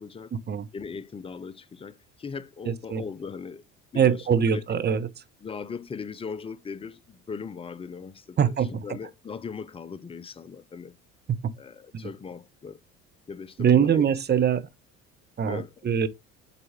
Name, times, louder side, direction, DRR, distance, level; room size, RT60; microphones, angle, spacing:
voice 1, 0.0-0.3 0.7-3.6 3.9-4.8 5.4-10.9 11.6-12.8 13.3-14.1 15.5-15.7, left 5 dB, 15° left, 0.5 m, -39 dB
voice 2, 2.7-3.0 3.9-5.1 8.4-8.7 12.0-12.1 13.6-14.7 15.4-16.1, right 8 dB, 25° right, 0.8 m, -23 dB
7.8 x 4.2 x 3.6 m
figure-of-eight pair, 60°, 40 cm